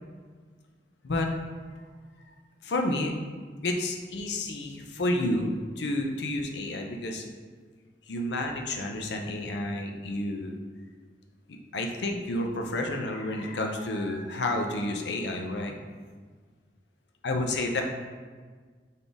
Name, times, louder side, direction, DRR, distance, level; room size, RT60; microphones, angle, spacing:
voice 1, 2.6-3.1 3.6-7.2 8.1-10.6 11.5-15.8 17.2-17.8, left 1 dB, 70° left, 3 dB, 0.6 m, -30 dB
4.1 x 3.6 x 3.4 m, 1.5 s
head